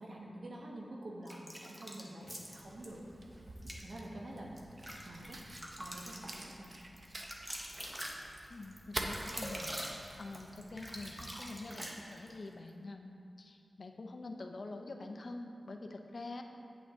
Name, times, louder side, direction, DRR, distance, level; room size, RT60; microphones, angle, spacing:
voice 1, 0.0-3.0 3.8-4.6 5.0-5.4 5.8-6.8, right 1 dB, 60° right, -2 dB, 1.2 m, -47 dB
sound 1, 1.3-2.9 3.6-3.8 4.4-12.4, equal, 15° right, 1.1 m, -45 dB
Fire, 2.6-11.4, right 1 dB, 45° right, 0.7 m, -47 dB
voice 2, 8.5-16.4, left 2 dB, 60° left, 4 dB, 0.7 m, -46 dB
8.5 x 8.1 x 3.7 m, 2.6 s
wide cardioid pair, 70°, 0 cm